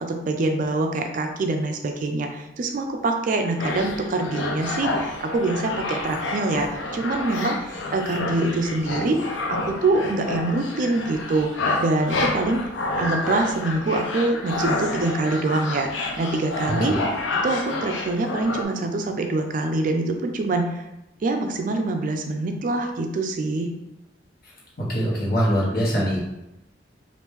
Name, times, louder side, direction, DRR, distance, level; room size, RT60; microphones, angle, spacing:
voice 1, 0.0-12.6 13.0-17.0 17.3-20.8 21.2-23.7, right 2 dB, 45° right, 5 dB, 0.3 m, -25 dB
sound 1, 3.6-18.6, left 2 dB, 80° left, 0.5 m, -29 dB
voice 2, 24.8-26.2, equal, 50° left, -5 dB, 1.2 m, -23 dB
2.9 x 2.5 x 3.5 m, 0.91 s
head